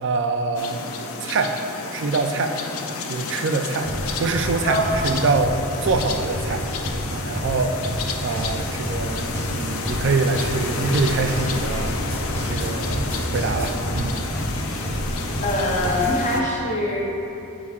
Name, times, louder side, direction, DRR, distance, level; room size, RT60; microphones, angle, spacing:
voice 1, 0.0-0.8 1.2-1.5 1.9-2.6 2.8-3.9 4.2-5.6 5.8-6.6 7.1-7.8 8.2-12.0 12.4-14.2, right 3 dB, 60° right, 6 dB, 0.4 m, -24 dB
sound 1, 0.6-16.4, left 4 dB, 85° left, 0.5 m, -31 dB
sound 2, 3.8-16.1, equal, 10° left, 1.0 m, -29 dB
voice 2, 4.6-5.0 15.4-17.0, left 1 dB, 35° left, -4 dB, 0.6 m, -23 dB
8.4 x 4.7 x 2.4 m, 2.9 s
head